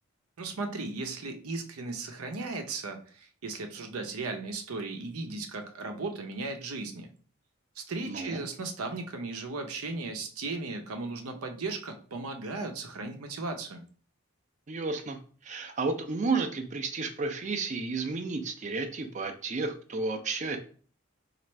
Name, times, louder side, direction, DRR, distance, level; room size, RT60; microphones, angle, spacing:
voice 1, 0.4-7.1 7.8-13.8, right 3 dB, 90° right, 5 dB, 0.7 m, -36 dB
voice 2, 8.1-8.4 14.7-20.6, right 3 dB, 35° right, 6 dB, 0.4 m, -32 dB
3.1 x 2.5 x 4.4 m, 0.42 s
head